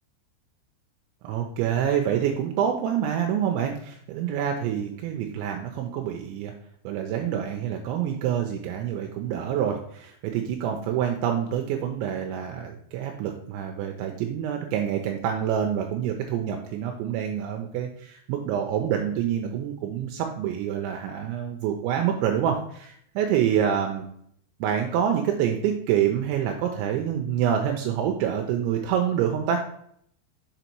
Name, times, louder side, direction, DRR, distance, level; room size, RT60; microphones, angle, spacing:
voice 1, 1.2-6.5 6.9-24.1 24.6-29.6, right 9 dB, 80° right, 3 dB, 2.8 m, -27 dB
7.0 x 4.0 x 4.5 m, 0.68 s
omnidirectional pair, 5.4 m